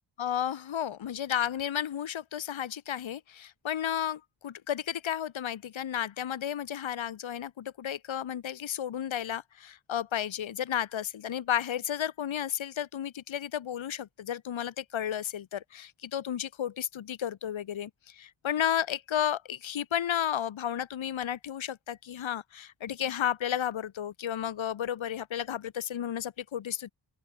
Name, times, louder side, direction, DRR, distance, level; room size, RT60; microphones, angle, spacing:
voice 1, 0.2-26.9, left 10 dB, 70° left, 1.4 m, -33 dB
open air
wide cardioid pair, 100°, 49 cm